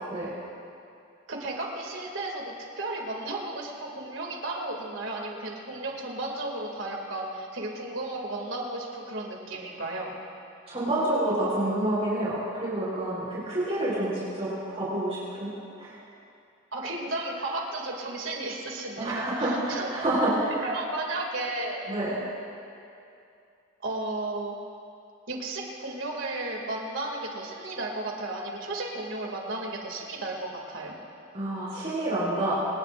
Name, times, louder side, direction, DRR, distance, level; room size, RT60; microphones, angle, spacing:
voice 1, 1.3-10.1 16.7-19.9 20.6-21.9 23.8-24.6 25.3-30.9, right 2 dB, 85° right, 0 dB, 2.5 m, -34 dB
voice 2, 10.7-15.5 15.8-15.9 19.0-20.6 21.9-22.2 31.3-32.6, right 1 dB, 35° right, -8 dB, 4.4 m, -28 dB
25.0 x 20.0 x 2.6 m, 2.6 s
head